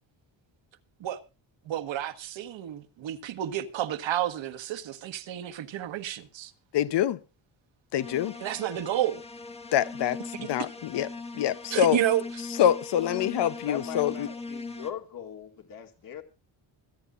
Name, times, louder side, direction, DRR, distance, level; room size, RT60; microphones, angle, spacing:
voice 1, 1.6-6.5 8.4-9.2 10.4-10.5 11.7-12.4, right 12 dB, 70° right, 1.6 m, -30 dB
voice 2, 6.7-7.2 7.9-8.4 9.7-11.1 11.3-12.0 12.6-14.3, left 10 dB, 60° left, 0.8 m, -25 dB
sound 1, 8.0-14.9, left 3 dB, 15° left, 1.3 m, -40 dB
voice 3, 13.6-16.2, left 9 dB, 45° left, 2.1 m, -40 dB
25.5 x 10.0 x 2.5 m
wide cardioid pair, 175°, 46 cm